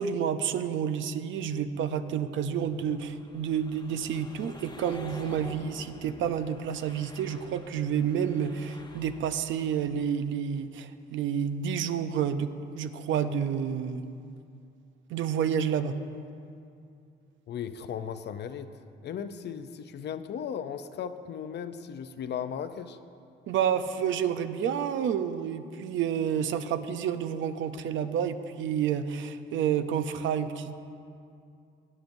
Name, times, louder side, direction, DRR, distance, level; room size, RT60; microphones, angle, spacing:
voice 1, 0.0-14.0 15.1-15.9 23.5-30.8, right 8 dB, 75° right, 10 dB, 0.6 m, -29 dB
sound 1, 1.8-9.9, left 3 dB, 20° left, 0.8 m, -49 dB
voice 2, 17.5-18.7 19.0-23.0, left 8 dB, 60° left, 10 dB, 0.6 m, -36 dB
17.0 x 9.3 x 2.7 m, 2.5 s
cardioid pair, 90°, 20 cm